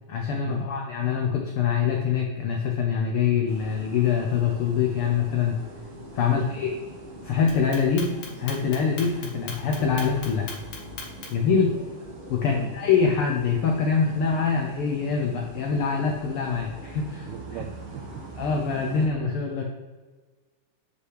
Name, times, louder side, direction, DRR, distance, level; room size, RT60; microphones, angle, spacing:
voice 1, 0.1-5.6 6.1-6.7 7.2-10.5 11.3-11.8 12.3-17.6 18.3-19.6, left 6 dB, 85° left, 1 dB, 1.2 m, -24 dB
sound 1, 3.5-19.1, right 1 dB, 50° right, 1.9 m, -43 dB
Clock, 7.5-11.5, left 5 dB, 70° left, 2.6 m, -38 dB
voice 2, 17.3-18.0, right 9 dB, 75° right, 9 dB, 1.7 m, -37 dB
8.0 x 5.6 x 3.3 m, 1.3 s
omnidirectional pair, 3.5 m